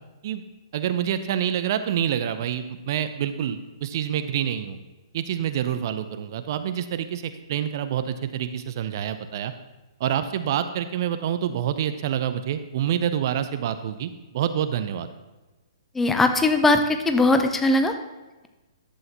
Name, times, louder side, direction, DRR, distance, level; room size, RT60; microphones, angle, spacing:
voice 1, 0.7-4.8 5.1-9.5 10.0-15.1, right 9 dB, 45° right, 10 dB, 0.6 m, -27 dB
voice 2, 16.0-17.9, left 2 dB, 10° left, 7 dB, 0.6 m, -20 dB
11.0 x 7.8 x 2.9 m, 1.1 s
figure-of-eight pair, 120°, 3 cm